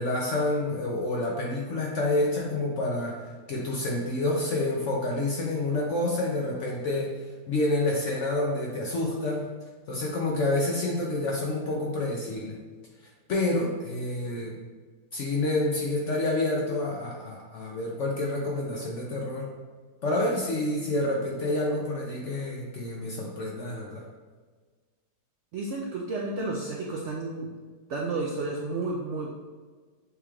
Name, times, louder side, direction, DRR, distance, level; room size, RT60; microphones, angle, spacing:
voice 1, 0.0-3.2 3.5-9.5 9.9-12.6 13.3-14.5 15.1-19.5 20.0-24.0, left 2 dB, 65° left, -2 dB, 0.7 m, -28 dB
voice 2, 25.5-27.5 27.9-29.3, right 3 dB, 75° right, -2 dB, 0.6 m, -31 dB
6.5 x 2.3 x 3.2 m, 1.4 s
omnidirectional pair, 1.8 m